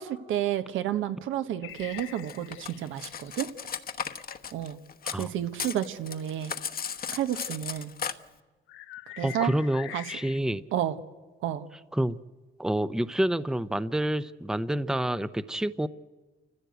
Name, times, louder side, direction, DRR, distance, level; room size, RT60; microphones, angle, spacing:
voice 1, 0.0-3.5 4.5-4.8 5.1-6.5 7.1-7.9 9.2-9.5 9.9-10.0 10.7-11.0 11.4-11.6, right 11 dB, 85° right, 10 dB, 1.4 m, -31 dB
sound 1, 1.6-3.4 8.7-10.4, left 14 dB, 85° left, 0.8 m, -44 dB
Cutlery silverware, 2.0-5.3 5.5-8.1, left 7 dB, 50° left, 1.1 m, -35 dB
voice 2, 9.2-10.6 11.9-12.2 12.6-15.9, right 1 dB, 5° right, 15 dB, 0.7 m, -28 dB
29.0 x 15.0 x 8.1 m, 1.3 s
cardioid pair, 90°, 20 cm